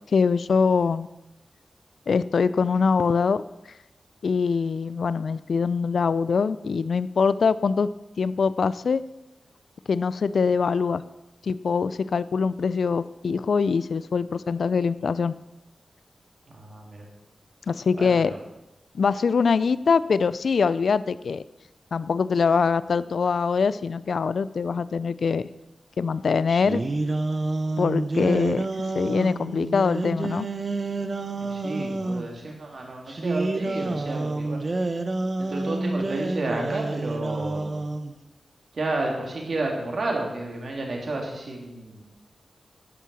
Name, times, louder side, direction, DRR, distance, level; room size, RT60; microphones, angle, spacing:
voice 1, 0.1-1.1 2.1-3.4 4.2-7.9 8.2-9.0 9.9-11.0 11.4-15.3 17.7-18.3 18.9-21.4 21.9-25.5 26.0-26.8 27.8-28.7 29.0-30.5, left 5 dB, 70° left, 17 dB, 0.4 m, -23 dB
voice 2, 16.5-17.1 17.9-18.4 31.4-34.6 35.4-37.8 38.7-42.0, right 2 dB, 60° right, 0 dB, 3.0 m, -31 dB
sound 1, 26.5-32.3 33.1-38.1, right 2 dB, 40° right, 0.8 m, -28 dB
11.0 x 8.4 x 6.3 m, 0.96 s
wide cardioid pair, 115°, 0 cm